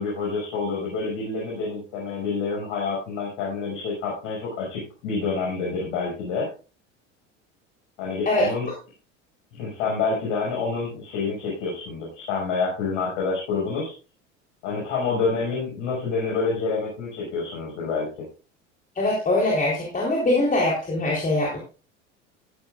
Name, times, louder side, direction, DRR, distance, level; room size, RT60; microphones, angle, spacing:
voice 1, 0.0-6.5 8.0-8.7 9.5-13.9 14.6-18.1, left 4 dB, 60° left, -3 dB, 6.0 m, -27 dB
voice 2, 19.0-21.6, left 2 dB, 20° left, -2 dB, 3.8 m, -22 dB
14.0 x 12.0 x 2.5 m, 0.34 s
hypercardioid pair, 80°, 37 cm